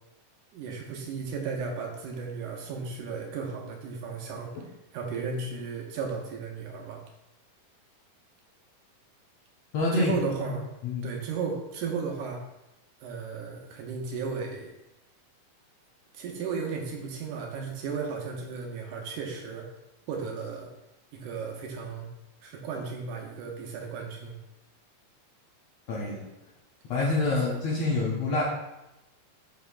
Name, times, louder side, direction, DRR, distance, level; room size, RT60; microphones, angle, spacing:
voice 1, 0.5-4.5 4.9-7.0 9.9-10.7 11.0-12.4 13.0-14.7 16.1-19.7 20.1-20.7 21.1-22.1 22.4-24.4 27.4-27.5, right 5 dB, 75° right, 1 dB, 2.0 m, -35 dB
voice 2, 9.7-10.1 10.4-10.5 10.8-11.2 25.9-26.2 26.9-28.4, left 3 dB, 70° left, -4 dB, 1.7 m, -27 dB
7.5 x 5.6 x 2.3 m, 0.93 s
omnidirectional pair, 3.9 m